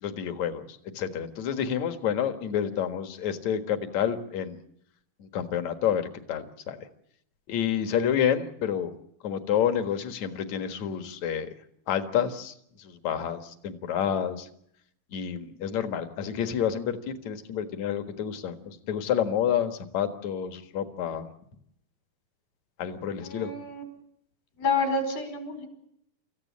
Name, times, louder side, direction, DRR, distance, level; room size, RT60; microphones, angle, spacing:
voice 1, 0.0-4.6 5.2-6.8 7.5-8.9 9.2-11.5 11.9-14.5 15.1-21.3 22.8-23.5, left 9 dB, 55° left, 8 dB, 2.6 m, -29 dB
voice 2, 23.2-23.8 24.6-25.7, left 3 dB, 75° left, 6 dB, 6.5 m, -29 dB
27.5 x 15.0 x 8.5 m, 0.75 s
omnidirectional pair, 4.2 m